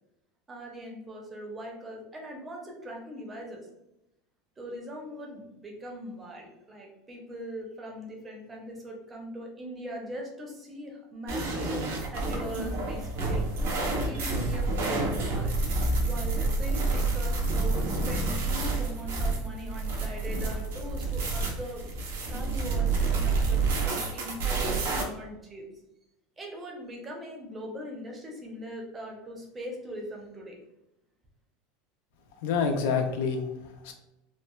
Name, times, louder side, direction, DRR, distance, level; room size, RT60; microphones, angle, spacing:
voice 1, 0.5-3.7 4.6-13.5 14.1-15.5 16.0-21.8 22.3-25.7 26.4-30.6, equal, 15° right, 0 dB, 0.5 m, -41 dB
sound 1, 11.3-25.0, right 3 dB, 90° right, 0.7 m, -28 dB
voice 2, 32.4-33.9, left 5 dB, 65° left, 4 dB, 0.4 m, -28 dB
3.0 x 2.2 x 2.2 m, 0.91 s
supercardioid pair, 170°, 0 cm